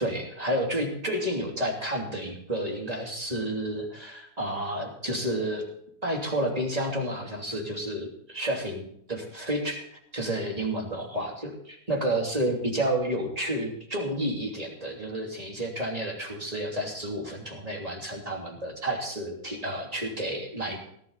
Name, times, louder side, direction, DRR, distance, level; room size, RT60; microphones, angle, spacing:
voice 1, 0.0-5.6 6.0-9.8 10.1-20.9, right 1 dB, 25° right, 0 dB, 3.0 m, -30 dB
18.0 x 11.5 x 4.1 m, 0.66 s
omnidirectional pair, 1.6 m